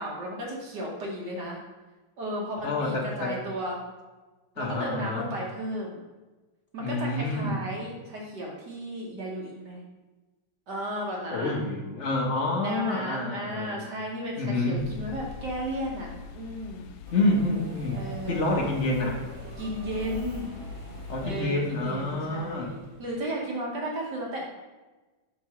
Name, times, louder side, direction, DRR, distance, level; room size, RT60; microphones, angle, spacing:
voice 1, 0.0-1.6 2.2-3.8 4.6-6.0 6.7-9.8 10.7-11.6 12.6-16.8 17.9-18.7 19.6-20.5 21.2-24.4, equal, 65° right, -2 dB, 1.7 m, -34 dB
voice 2, 2.6-3.4 4.6-5.3 6.8-7.6 11.3-13.8 14.4-14.8 17.1-19.2 21.1-22.7, left 2 dB, 45° left, 0 dB, 1.1 m, -28 dB
sound 1, 14.8-21.4, left 5 dB, 80° left, 1.3 m, -42 dB
Subway metro underground, 17.1-23.3, right 2 dB, 85° right, 0.4 m, -46 dB
4.8 x 4.6 x 5.5 m, 1.2 s
omnidirectional pair, 2.1 m